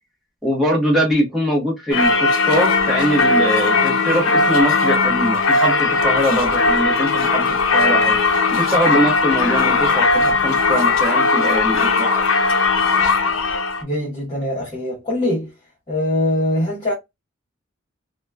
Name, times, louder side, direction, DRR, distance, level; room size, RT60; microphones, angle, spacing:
voice 1, 0.4-8.2 8.5-12.2, equal, ahead, 1.0 m, -22 dB
Singing / Church bell, 1.9-13.8, left 4 dB, 85° left, 0.6 m, -18 dB
voice 2, 13.8-15.5 15.9-16.9, left 1 dB, 30° left, 1.0 m, -22 dB
2.8 x 2.2 x 2.2 m
head